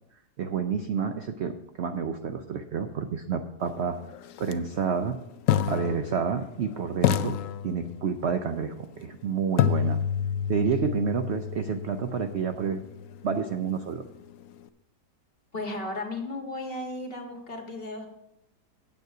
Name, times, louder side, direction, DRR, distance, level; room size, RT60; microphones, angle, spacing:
voice 1, 0.4-1.5 1.8-4.0 4.4-5.2 5.7-7.4 7.6-10.0 10.5-12.8 13.2-14.0, right 6 dB, 70° right, 7 dB, 0.6 m, -29 dB
sound 1, 4.4-4.5 5.5-6.6 7.0-8.3 9.6-13.5, left 10 dB, 75° left, 0.7 m, -29 dB
voice 2, 15.5-18.1, left 2 dB, 35° left, 2 dB, 1.7 m, -35 dB
9.3 x 8.2 x 4.8 m, 0.80 s
omnidirectional pair, 1.9 m